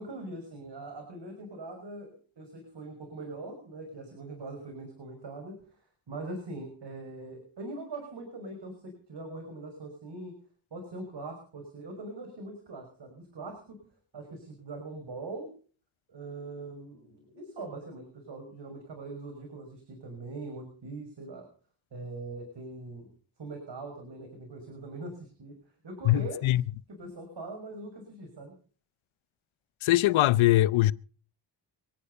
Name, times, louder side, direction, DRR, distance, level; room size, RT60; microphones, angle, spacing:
voice 1, 0.0-10.3 10.7-13.8 14.1-15.5 16.1-21.5 21.9-23.1 23.4-25.5 25.8-26.5 27.0-28.5, right 2 dB, 60° right, 6.1 m, -42 dB
voice 2, 26.0-26.6 29.8-30.9, left 15 dB, 85° left, 0.7 m, -22 dB
25.0 x 9.7 x 5.5 m
cardioid pair, 50°, 47 cm